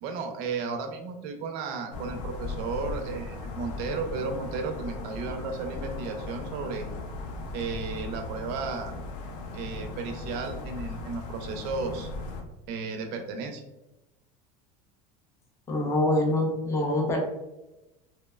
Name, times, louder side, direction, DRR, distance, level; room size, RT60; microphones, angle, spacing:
voice 1, 0.0-6.9 7.5-8.9 9.5-12.1 12.7-13.6, right 4 dB, 55° right, 5 dB, 0.4 m, -34 dB
sound 1, 1.9-12.4, left 3 dB, 85° left, 0.5 m, -37 dB
voice 2, 15.7-17.2, left 1 dB, 15° left, 1 dB, 0.4 m, -25 dB
2.8 x 2.0 x 2.2 m, 0.98 s
supercardioid pair, 150°, 20 cm